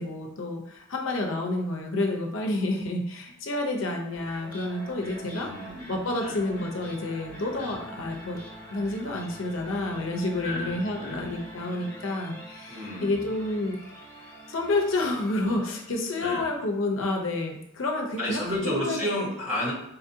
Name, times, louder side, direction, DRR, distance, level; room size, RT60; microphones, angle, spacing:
voice 1, 0.0-5.5 5.9-8.4 8.7-13.8 14.2-19.1, left 2 dB, 60° left, 2 dB, 0.6 m, -29 dB
sound 1, 4.0-16.2, right 1 dB, 15° left, 1.4 m, -45 dB
voice 2, 5.3-6.4 7.5-7.8 10.4-11.4 12.7-13.3 16.2-16.5 18.2-19.7, left 1 dB, 30° right, -6 dB, 1.3 m, -32 dB
4.1 x 2.6 x 2.7 m, 0.81 s
head